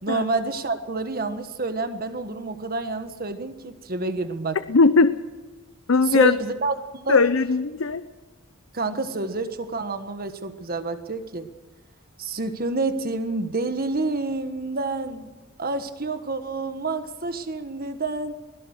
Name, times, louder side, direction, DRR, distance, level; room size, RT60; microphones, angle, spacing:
voice 1, 0.0-4.6 6.0-7.2 8.7-11.5 12.2-15.3 15.6-18.3, right 3 dB, 45° right, 9 dB, 1.4 m, -28 dB
voice 2, 4.7-5.1 5.9-6.4 7.1-8.0, left 4 dB, 70° left, 12 dB, 0.8 m, -18 dB
23.0 x 17.0 x 6.6 m, 1.2 s
head